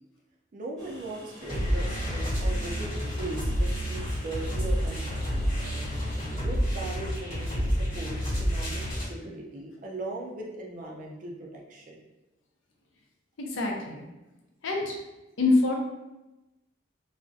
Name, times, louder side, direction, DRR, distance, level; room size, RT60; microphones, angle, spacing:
voice 1, 0.5-5.5 6.2-12.0, right 2 dB, 45° right, -2 dB, 0.4 m, -39 dB
Train, 0.8-6.3, equal, ahead, 0.8 m, -48 dB
sound 1, 1.4-9.1, equal, 30° left, 1.2 m, -29 dB
voice 2, 13.4-14.0 14.6-15.0 15.4-15.7, left 3 dB, 85° left, 0 dB, 0.5 m, -25 dB
2.4 x 2.1 x 2.6 m, 1.0 s
head